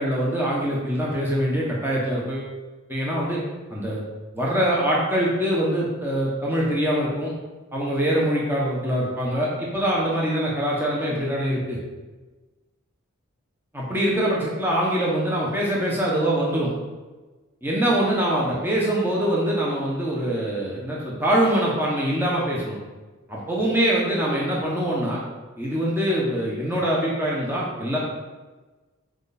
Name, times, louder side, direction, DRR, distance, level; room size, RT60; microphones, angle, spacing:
voice 1, 0.0-2.5 2.9-3.4 3.7-4.0 4.3-7.3 7.7-11.8 13.7-16.7 17.6-22.8 23.3-25.2 25.6-28.0, right 1 dB, 10° right, -5 dB, 1.3 m, -24 dB
7.9 x 5.4 x 4.2 m, 1.2 s
head